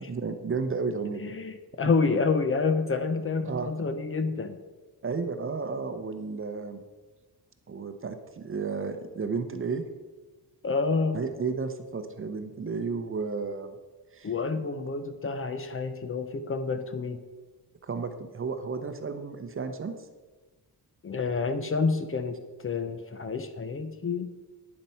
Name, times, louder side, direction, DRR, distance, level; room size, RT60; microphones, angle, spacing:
voice 1, 0.0-1.3 3.4-3.7 5.0-6.8 7.7-9.8 11.1-13.7 14.1-14.3 17.8-19.9, right 4 dB, 30° right, 8 dB, 0.7 m, -32 dB
voice 2, 1.2-4.6 10.6-11.2 14.2-17.2 21.0-22.4 22.6-24.3, left 4 dB, 35° left, 9 dB, 0.6 m, -28 dB
9.7 x 7.4 x 5.6 m, 1.3 s
wide cardioid pair, 170°, 40 cm